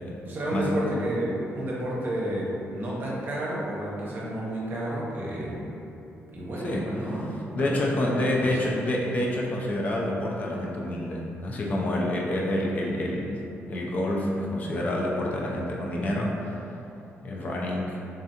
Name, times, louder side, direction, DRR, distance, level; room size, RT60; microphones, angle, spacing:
voice 1, 0.2-5.7 6.3-8.8, right 1 dB, 45° right, -5 dB, 0.7 m, -31 dB
voice 2, 7.6-16.6 17.2-18.0, left 1 dB, 35° left, -2 dB, 0.4 m, -28 dB
3.6 x 3.2 x 2.7 m, 2.8 s
cardioid pair, 160°, 5 cm